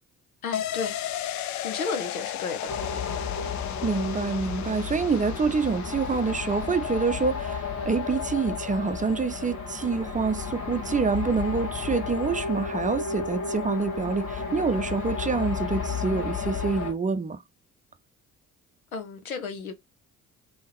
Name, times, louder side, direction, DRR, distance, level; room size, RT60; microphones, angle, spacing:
voice 1, 0.4-1.0 1.6-2.7 18.9-19.7, left 4 dB, 90° left, 0.8 m, -33 dB
sound 1, 0.5-9.9 10.2-10.3, left 12 dB, 45° left, 0.5 m, -37 dB
sound 2, 2.7-16.9, left 5 dB, 70° left, 1.8 m, -32 dB
voice 2, 3.8-17.4, right 4 dB, 20° right, 0.6 m, -27 dB
3.5 x 3.4 x 3.0 m
figure-of-eight pair, 45°, 41 cm